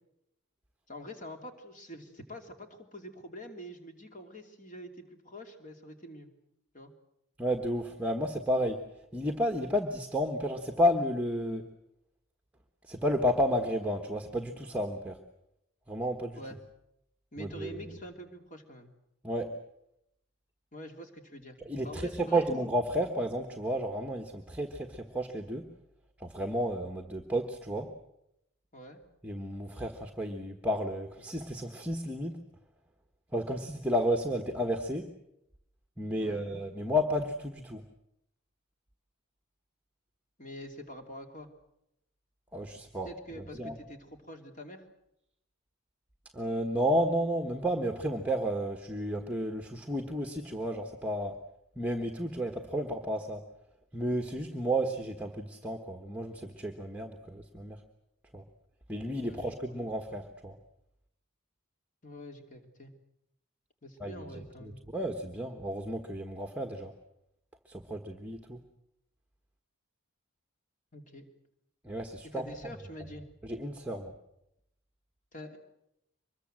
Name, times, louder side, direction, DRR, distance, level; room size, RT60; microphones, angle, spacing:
voice 1, 0.9-6.3 6.7-6.9 16.4-16.6 17.3-18.9 20.7-22.5 28.7-29.0 36.2-36.4 40.4-41.5 43.0-44.9 59.2-59.7 62.0-62.9 63.8-64.8 70.9-71.3 72.3-73.2 75.3-75.6, equal, 35° left, 5 dB, 3.0 m, -46 dB
voice 2, 7.4-8.8 9.1-11.7 12.8-15.2 15.9-16.4 17.4-17.8 19.2-19.5 21.6-25.7 26.2-27.9 29.2-32.4 33.3-35.1 36.0-37.9 42.5-43.1 43.4-43.8 46.3-51.4 51.8-53.5 53.9-57.8 58.3-58.4 58.9-60.6 64.0-66.9 67.6-68.6 71.8-72.8 73.4-74.1, equal, 5° right, 4 dB, 1.3 m, -32 dB
24.5 x 21.5 x 7.7 m, 0.82 s
head